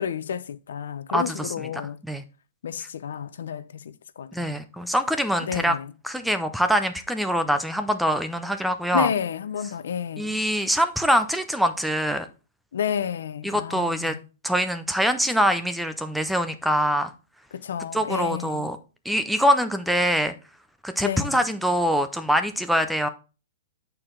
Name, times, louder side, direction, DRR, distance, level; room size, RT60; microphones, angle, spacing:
voice 1, 0.0-2.0 2.6-4.6 5.4-5.9 8.9-10.4 12.7-14.2 17.5-18.7 21.0-21.4, left 8 dB, 70° left, 0.5 m, -31 dB
voice 2, 1.1-1.5 2.0-2.2 4.3-5.8 6.0-9.1 10.2-12.3 13.4-14.2 14.4-17.1 17.9-18.8 19.1-20.3 20.8-23.1, equal, ahead, 0.3 m, -24 dB
8.6 x 4.5 x 3.7 m
hypercardioid pair, 180°, 0 cm